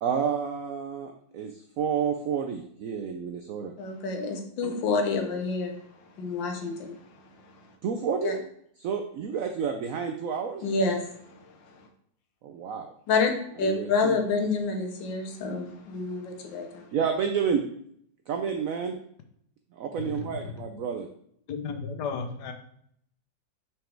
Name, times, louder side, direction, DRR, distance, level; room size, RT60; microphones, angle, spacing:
voice 1, 0.0-3.7 4.6-4.7 7.8-8.4 8.8-10.6 12.4-12.9 13.6-14.2 16.9-17.6 18.3-19.0 19.7-21.1, right 7 dB, 75° right, 5 dB, 0.8 m, -30 dB
voice 2, 3.8-5.8 6.2-6.9 8.2-8.4 10.6-11.0 13.1-13.3 13.6-16.9, left 4 dB, 90° left, 4 dB, 1.7 m, -28 dB
voice 3, 20.0-20.7 21.5-22.5, left 5 dB, 70° left, 7 dB, 1.2 m, -34 dB
6.0 x 4.9 x 3.3 m, 0.68 s
omnidirectional pair, 2.0 m